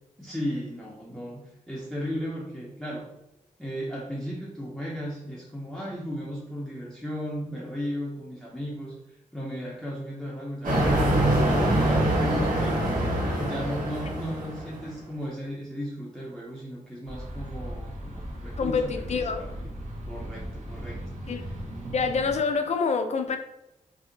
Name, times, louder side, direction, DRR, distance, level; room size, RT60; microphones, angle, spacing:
voice 1, 0.2-3.1 3.6-11.7 12.1-12.9 13.2-19.7 20.1-21.0, equal, ahead, -5 dB, 0.6 m, -36 dB
sound 1, 10.6-14.8, right 1 dB, 80° right, 1.0 m, -24 dB
sound 2, 17.0-22.4, equal, 60° right, 0.8 m, -37 dB
voice 2, 18.6-19.5 21.3-21.4 21.9-23.4, left 5 dB, 55° left, 6 dB, 0.4 m, -26 dB
2.6 x 2.0 x 3.8 m, 0.88 s
cardioid pair, 70°, 14 cm